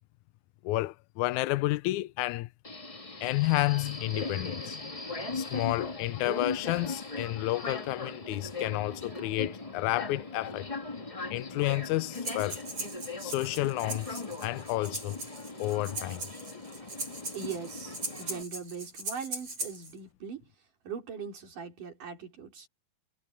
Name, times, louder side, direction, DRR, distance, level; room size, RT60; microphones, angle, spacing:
voice 1, 0.6-2.5 3.2-4.8 5.3-10.7 11.3-12.6 13.2-15.2 15.6-16.2, left 19 dB, 80° left, 1.8 m, -31 dB
Subway metro underground, 2.6-18.4, left 3 dB, 25° left, 0.7 m, -39 dB
Breathing, 12.1-19.9, right 2 dB, 45° right, 8.9 m, -40 dB
voice 2, 17.3-20.5 20.8-22.7, right 6 dB, 70° right, 5.7 m, -40 dB
omnidirectional pair, 3.8 m